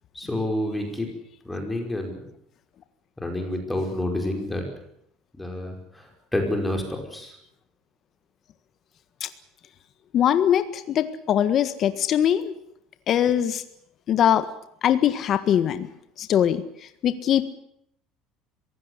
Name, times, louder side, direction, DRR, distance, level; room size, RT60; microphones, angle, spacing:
voice 1, 0.1-1.1 1.4-2.2 3.2-4.6 5.4-7.4, left 1 dB, 10° left, 3 dB, 5.3 m, -29 dB
voice 2, 10.1-12.5 13.1-13.6 14.1-14.5 14.8-15.9 16.2-16.6 17.0-17.5, left 10 dB, 45° left, 11 dB, 1.6 m, -21 dB
22.0 x 16.5 x 9.7 m, 0.73 s
cardioid pair, 130°, 0 cm